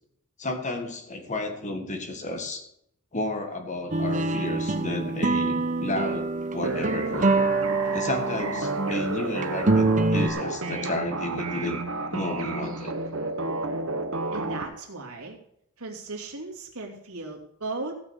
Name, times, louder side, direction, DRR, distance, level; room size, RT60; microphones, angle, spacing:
voice 1, 0.4-2.6 3.1-7.3 7.9-11.8 12.1-12.9, left 2 dB, 35° left, 5 dB, 1.8 m, -32 dB
sound 1, 3.9-8.9 9.4-10.3, right 3 dB, 35° right, 0.9 m, -25 dB
sound 2, 6.6-14.6, right 3 dB, 70° right, 1.3 m, -31 dB
voice 2, 14.3-15.4 15.8-17.9, right 3 dB, 90° right, 1 dB, 2.7 m, -36 dB
15.5 x 6.2 x 6.5 m, 0.74 s
head